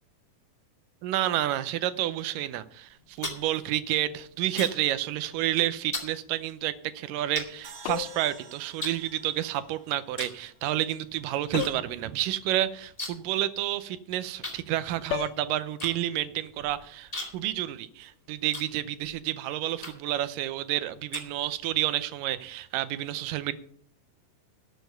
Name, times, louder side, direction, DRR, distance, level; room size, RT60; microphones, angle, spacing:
voice 1, 1.0-23.5, right 13 dB, 90° right, 2.3 m, -30 dB
sound 1, 2.9-5.0 5.2-5.5 5.9-6.2 6.8-6.9 7.4-8.3 8.8-9.7 10.1-10.4 10.7-11.7 12.0-12.1 12.3-13.4 13.6-13.7 14.4-19.2 19.8-20.2 20.7-21.8, left 2 dB, 15° left, 1.8 m, -39 dB
sound 2, 7.6-11.0, right 5 dB, 50° right, 1.8 m, -50 dB
sound 3, 7.8-8.3 11.5-12.0 15.1-15.4, left 12 dB, 85° left, 1.5 m, -33 dB
12.5 x 6.9 x 6.7 m
omnidirectional pair, 3.8 m